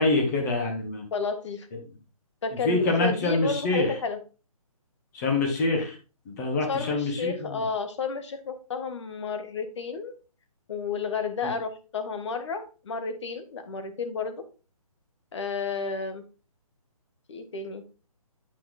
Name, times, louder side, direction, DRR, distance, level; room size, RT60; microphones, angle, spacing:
voice 1, 0.0-1.0 2.6-3.9 5.1-6.0 6.3-7.6 11.4-11.5, left 2 dB, 30° left, 2 dB, 2.2 m, -25 dB
voice 2, 1.1-1.7 2.4-4.2 6.7-10.1 10.7-14.4 15.3-16.2 17.3-17.8, left 5 dB, 50° left, 9 dB, 1.5 m, -31 dB
9.1 x 4.4 x 4.0 m, 0.34 s
hypercardioid pair, 160°, 19 cm